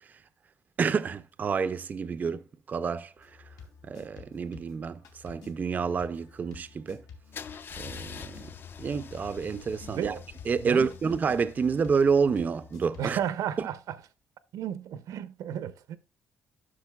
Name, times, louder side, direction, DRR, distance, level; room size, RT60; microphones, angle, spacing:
voice 1, 0.8-3.3 3.8-7.0 7.8-8.5 8.8-10.2 10.5-13.2 13.6-13.7, right 5 dB, 30° right, 0.4 m, -28 dB
sound 1, 3.2-13.3, left 6 dB, 90° left, 2.3 m, -51 dB
Car / Engine starting / Idling, 7.3-13.2, left 7 dB, 40° left, 0.4 m, -45 dB
voice 2, 9.9-10.2 10.6-10.9 13.0-14.0 14.5-16.0, right 10 dB, 85° right, 0.7 m, -33 dB
12.0 x 6.3 x 2.2 m
cardioid pair, 155°, 6 cm